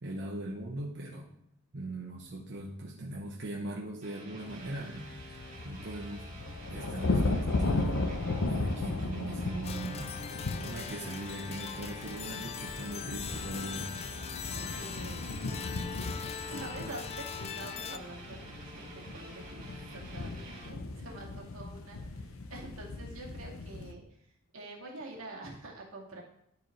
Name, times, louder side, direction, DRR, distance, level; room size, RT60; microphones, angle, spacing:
voice 1, 0.0-1.3 1.7-6.3 6.7-8.0 8.5-13.9, right 1 dB, 55° right, -3 dB, 1.0 m, -40 dB
sound 1, 4.0-20.7, right 1 dB, 40° right, 3.6 m, -49 dB
sound 2, 4.4-23.9, left 2 dB, 85° left, 0.7 m, -36 dB
sound 3, 9.6-18.0, left 8 dB, 30° left, 0.3 m, -41 dB
voice 2, 14.5-15.6 16.4-19.6 19.9-24.0 24.5-26.2, right 2 dB, 85° right, -2 dB, 2.2 m, -46 dB
12.5 x 4.8 x 3.2 m, 0.74 s
head